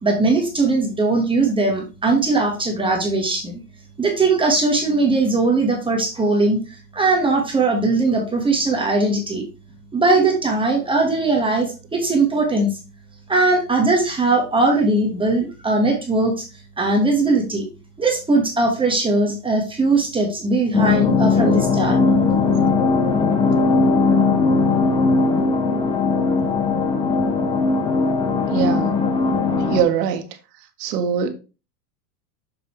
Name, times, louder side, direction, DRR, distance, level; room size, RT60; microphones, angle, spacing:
voice 1, 0.0-3.6 4.0-9.4 9.9-12.7 13.3-16.5 16.8-17.7 18.0-22.0, right 3 dB, 10° right, 1.3 m, -19 dB
sound 1, 20.7-29.8, left 4 dB, 10° left, 0.5 m, -19 dB
voice 2, 28.5-29.0 29.7-30.2 30.8-31.3, right 7 dB, 75° right, 1.5 m, -22 dB
6.6 x 6.5 x 3.0 m
supercardioid pair, 145°, 47 cm